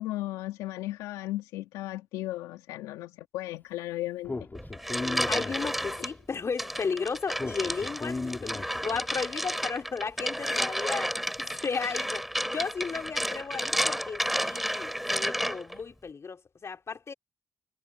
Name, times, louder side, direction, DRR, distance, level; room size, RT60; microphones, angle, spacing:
voice 1, 0.0-4.5 10.4-10.6, left 16 dB, 90° left, 2.3 m, -36 dB
Speech, 4.2-6.1 7.4-9.1, left 3 dB, 30° left, 6.2 m, -36 dB
sound 1, 4.5-6.1 6.6-15.8, equal, ahead, 6.5 m, -31 dB
voice 2, 5.3-11.1 11.4-17.1, left 5 dB, 50° left, 4.1 m, -34 dB
hypercardioid pair, 45°, 6 cm